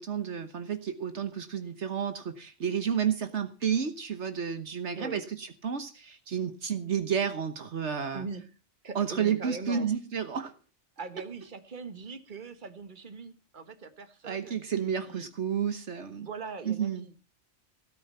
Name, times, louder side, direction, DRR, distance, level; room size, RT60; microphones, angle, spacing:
voice 1, 0.0-8.2 8.9-10.5 14.2-16.3 16.6-17.1, right 7 dB, 70° right, 9 dB, 1.5 m, -31 dB
voice 2, 8.8-9.9 11.0-15.3 16.2-17.1, right 4 dB, 45° right, 9 dB, 1.6 m, -41 dB
17.0 x 9.5 x 5.5 m, 0.34 s
omnidirectional pair, 1.2 m